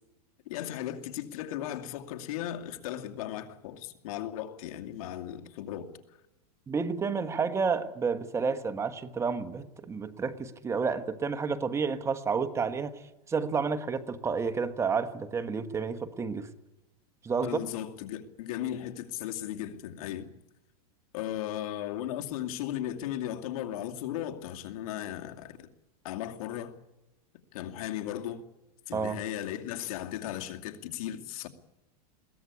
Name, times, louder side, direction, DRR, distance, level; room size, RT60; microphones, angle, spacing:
voice 1, 0.5-6.0 17.4-20.3 21.1-25.7 26.0-26.8 27.5-28.5 28.9-31.5, left 11 dB, 65° left, 2.6 m, -36 dB
voice 2, 6.7-13.0 13.3-16.5 17.2-17.6 28.9-29.2, right 5 dB, 15° right, 1.3 m, -30 dB
22.0 x 17.0 x 9.7 m
supercardioid pair, 150°, 20 cm